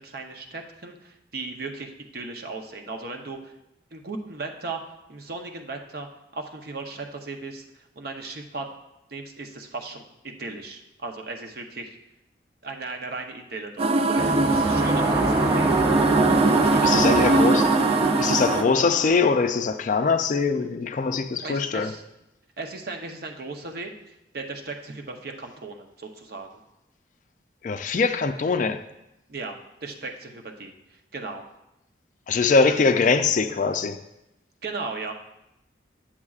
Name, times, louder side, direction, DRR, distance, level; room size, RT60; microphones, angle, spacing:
voice 1, 0.0-3.5 3.9-4.8 5.1-6.1 6.3-7.6 8.0-8.7 9.1-12.0 12.6-15.8 16.6-17.2 21.4-22.0 22.6-26.5 29.3-30.7 31.1-31.4 34.6-35.1, right 3 dB, 55° right, 4 dB, 0.7 m, -36 dB
sound 1, 13.8-18.6, right 3 dB, 35° right, 0.3 m, -21 dB
sound 2, 14.2-19.7, right 1 dB, 15° right, 0.7 m, -26 dB
voice 2, 16.8-17.7 18.2-21.9 27.6-28.8 32.3-34.0, left 4 dB, 45° left, 9 dB, 0.4 m, -22 dB
9.7 x 7.3 x 2.4 m, 0.90 s
head